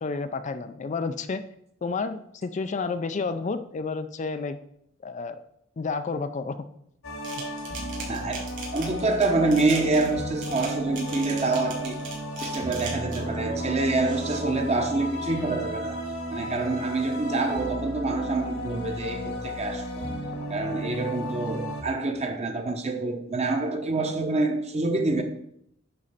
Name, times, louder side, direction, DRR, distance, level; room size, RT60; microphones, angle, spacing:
voice 1, 0.0-1.4 1.8-4.6 5.0-5.4 5.8-6.6, left 4 dB, 35° left, 10 dB, 0.4 m, -30 dB
sound 1, 7.0-21.8, equal, 80° left, 1.7 m, -34 dB
sound 2, 7.2-13.4 13.9-14.4, right 4 dB, 65° right, 3.7 m, -39 dB
voice 2, 8.1-12.0 12.4-16.0 16.3-20.1 20.5-25.2, right 3 dB, 30° right, 5 dB, 1.0 m, -27 dB
9.9 x 4.2 x 5.7 m, 0.72 s
head